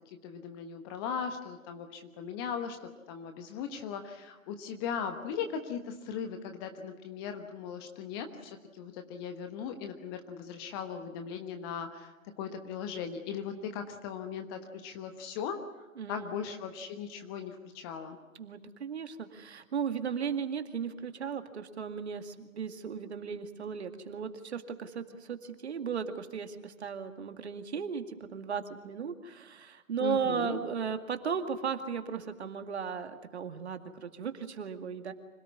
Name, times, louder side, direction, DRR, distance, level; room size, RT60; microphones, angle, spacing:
voice 1, 0.2-15.6 16.1-18.2 30.0-30.6, left 7 dB, 20° left, 7 dB, 1.2 m, -38 dB
voice 2, 16.0-16.4 18.4-35.1, right 6 dB, 50° right, 8 dB, 2.2 m, -36 dB
26.0 x 18.0 x 9.7 m, 1.1 s
figure-of-eight pair, 140°, 41 cm